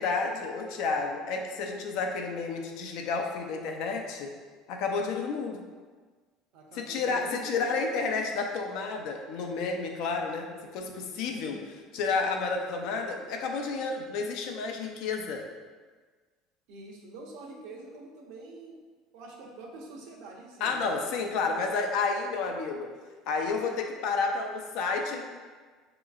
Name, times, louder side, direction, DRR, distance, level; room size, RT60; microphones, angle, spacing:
voice 1, 0.0-4.3 4.7-5.6 6.7-11.6 11.9-15.5 20.6-22.9 23.3-25.2, left 4 dB, 60° left, 3 dB, 0.5 m, -31 dB
voice 2, 6.5-7.8 11.2-11.5 16.7-18.8 19.1-21.7 23.4-23.6, right 2 dB, 65° right, -1 dB, 0.8 m, -46 dB
6.2 x 2.9 x 2.4 m, 1.4 s
cardioid pair, 165°, 0 cm